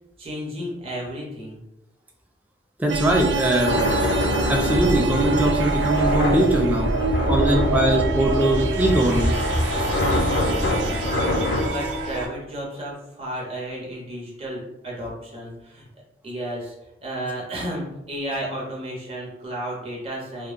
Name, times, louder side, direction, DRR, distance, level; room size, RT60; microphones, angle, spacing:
voice 1, 0.2-1.6 10.7-11.1 11.6-15.9 16.2-16.7 17.0-20.5, right 1 dB, 30° right, -4 dB, 0.7 m, -33 dB
voice 2, 2.8-3.7 4.5-6.9 7.3-9.4, right 1 dB, 10° right, 0 dB, 0.3 m, -21 dB
sound 1, 2.9-12.3, right 3 dB, 85° right, 0.3 m, -26 dB
sound 2, 3.7-11.7, left 1 dB, 80° left, 0.4 m, -26 dB
2.8 x 2.2 x 2.4 m, 0.91 s
head